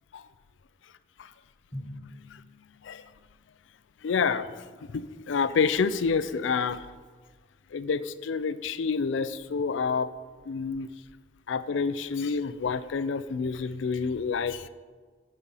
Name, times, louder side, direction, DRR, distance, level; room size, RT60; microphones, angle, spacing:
Drum, 1.7-3.5, left 1 dB, 25° left, 1.3 m, -44 dB
voice 1, 4.0-4.5 4.9-6.9 7.7-10.1 10.5-10.9 11.5-14.7, left 5 dB, 80° left, 14 dB, 0.4 m, -28 dB
11.5 x 4.3 x 5.4 m, 1.5 s
head